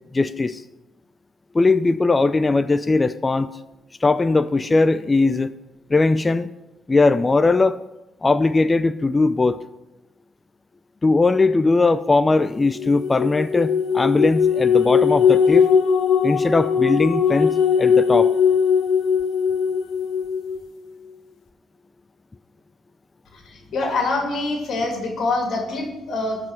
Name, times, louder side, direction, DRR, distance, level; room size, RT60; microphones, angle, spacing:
voice 1, 0.1-0.6 1.5-3.5 4.0-5.5 5.9-6.5 6.9-7.8 8.2-9.6 11.0-15.7 16.2-18.3, left 3 dB, 25° left, 13 dB, 0.4 m, -19 dB
sound 1, 12.8-20.6, left 6 dB, 80° left, 0.9 m, -19 dB
voice 2, 23.3-26.4, left 3 dB, 65° left, 1 dB, 2.4 m, -25 dB
13.0 x 4.8 x 6.3 m, 1.0 s
cardioid pair, 90°, 0 cm